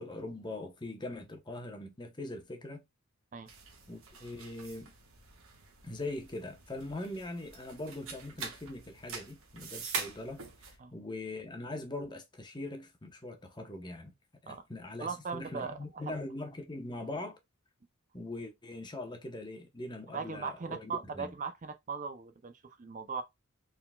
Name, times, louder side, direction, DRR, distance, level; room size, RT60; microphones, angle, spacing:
voice 1, 0.0-2.8 3.9-4.9 5.8-10.4 10.7-14.1 14.4-17.4 18.1-20.9 21.2-21.3, left 2 dB, 20° left, 0.8 m, -41 dB
sound 1, 3.5-10.8, right 5 dB, 70° right, 1.5 m, -44 dB
voice 2, 15.0-16.1 20.1-23.2, right 5 dB, 35° right, 0.4 m, -39 dB
4.6 x 3.8 x 2.2 m
head